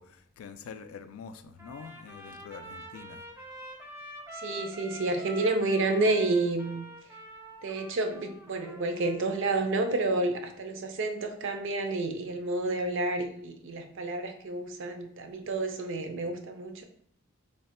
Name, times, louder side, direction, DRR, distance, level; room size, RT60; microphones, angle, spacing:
voice 1, 0.0-3.2, left 6 dB, 75° left, 9 dB, 0.3 m, -45 dB
Trumpet, 1.6-9.7, equal, 10° right, 0.5 m, -46 dB
voice 2, 4.4-6.9 7.6-16.8, right 2 dB, 65° right, 6 dB, 0.5 m, -30 dB
3.2 x 2.1 x 4.1 m, 0.68 s
head